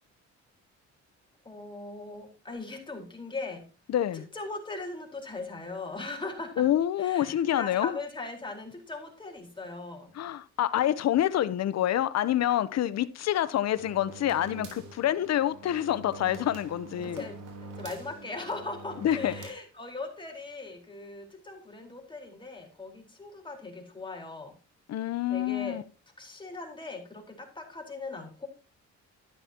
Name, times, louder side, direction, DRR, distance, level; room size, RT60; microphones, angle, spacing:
voice 1, 1.4-3.7 4.1-6.7 7.0-10.1 17.0-24.6 25.3-25.8 26.2-28.5, left 3 dB, 15° left, 4.4 m, -39 dB
voice 2, 3.9-4.3 6.6-8.0 10.1-17.2 19.0-19.3 24.9-25.8, left 12 dB, 60° left, 0.8 m, -27 dB
sound 1, 13.7-19.5, right 3 dB, 80° right, 3.7 m, -45 dB
12.5 x 10.0 x 2.9 m
cardioid pair, 90°, 30 cm